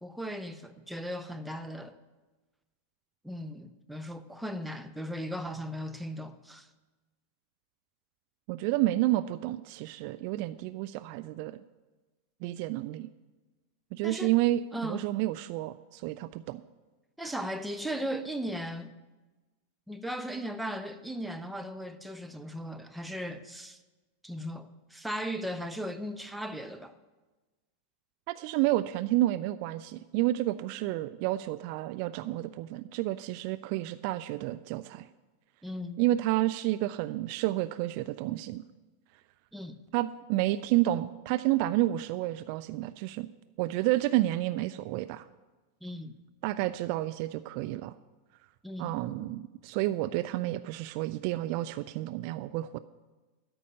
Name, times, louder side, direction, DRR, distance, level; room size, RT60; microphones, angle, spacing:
voice 1, 0.0-2.0 3.2-6.7 14.0-14.3 14.7-15.0 17.2-18.9 19.9-23.8 24.2-26.9 35.6-36.0 39.5-39.8 45.8-46.1 48.6-49.0, equal, 5° right, 0.7 m, -37 dB
voice 2, 8.5-11.6 12.4-13.1 13.9-16.6 17.2-17.3 28.3-35.1 36.0-38.6 39.9-43.3 43.6-45.3 46.4-47.9 48.8-52.8, right 16 dB, 45° right, 0.4 m, -30 dB
13.5 x 5.3 x 9.3 m
figure-of-eight pair, 90°, 0 cm